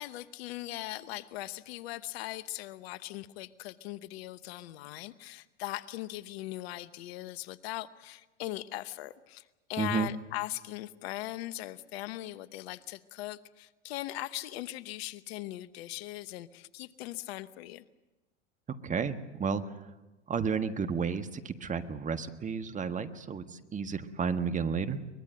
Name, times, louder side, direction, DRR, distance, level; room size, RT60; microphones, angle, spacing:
voice 1, 0.0-17.8, left 16 dB, 60° left, 16 dB, 1.0 m, -40 dB
voice 2, 9.8-10.1 18.7-19.7 20.3-25.1, right 6 dB, 20° right, 9 dB, 1.5 m, -32 dB
23.5 x 21.0 x 7.8 m, 1.1 s
hypercardioid pair, 90°, 35 cm